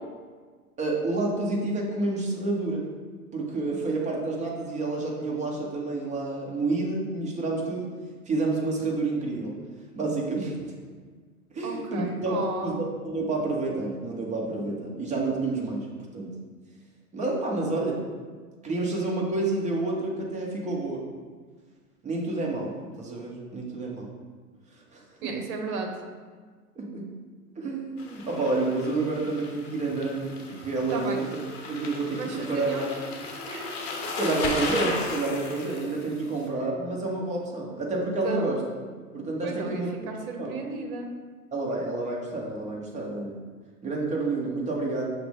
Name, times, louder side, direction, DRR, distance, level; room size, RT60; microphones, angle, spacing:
voice 1, 0.8-2.8 3.3-7.9 8.3-9.6 10.0-10.7 11.5-12.4 12.6-16.3 17.1-18.0 18.6-21.0 22.0-24.1 24.9-25.3 26.8-27.1 27.6-31.3 31.7-32.9 34.0-38.6 39.1-39.9 40.4-40.5 41.5-43.4 43.8-45.1, right 2 dB, 15° right, -2 dB, 0.7 m, -29 dB
voice 2, 11.6-12.8 25.2-26.0 30.9-31.3 32.2-32.8 33.5-33.8 38.2-38.5 39.4-41.1, right 4 dB, 65° right, 3 dB, 0.8 m, -34 dB
sound 1, 28.0-36.5, left 3 dB, 45° left, 0.7 m, -36 dB
5.8 x 2.1 x 3.4 m, 1.5 s
hypercardioid pair, 100°, 46 cm